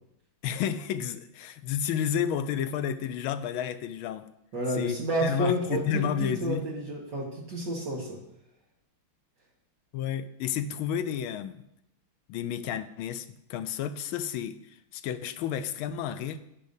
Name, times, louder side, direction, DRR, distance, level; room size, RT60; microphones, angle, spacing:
voice 1, 0.4-4.3 4.8-4.9 5.2-6.7 9.9-11.6 12.3-16.4, left 9 dB, 80° left, 12 dB, 1.4 m, -31 dB
voice 2, 4.5-8.2, right 1 dB, 55° right, -5 dB, 2.1 m, -30 dB
10.0 x 9.9 x 2.7 m, 0.79 s
omnidirectional pair, 2.4 m